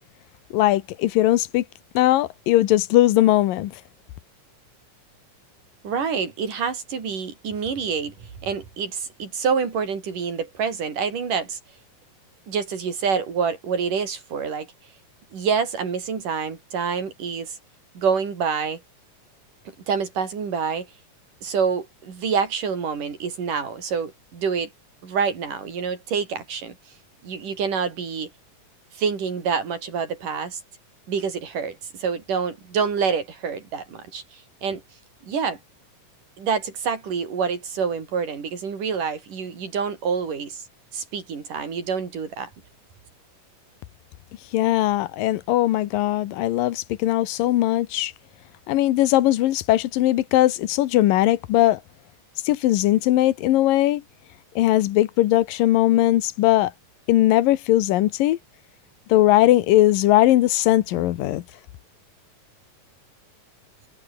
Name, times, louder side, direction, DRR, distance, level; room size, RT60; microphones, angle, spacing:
voice 1, 0.5-1.6 1.9-3.7 44.5-48.1 48.7-51.8 52.5-54.0 54.6-56.7 57.1-58.4 59.1-61.4, left 15 dB, 85° left, 2.8 m, -19 dB
voice 2, 5.8-11.6 12.5-14.7 15.3-17.6 18.0-18.8 19.9-20.9 21.4-24.7 25.0-26.8 27.2-28.3 28.9-30.6 31.1-34.8 35.3-35.6 36.4-40.6 40.9-42.5, right 6 dB, 70° right, 5.7 m, -27 dB
omnidirectional pair, 3.9 m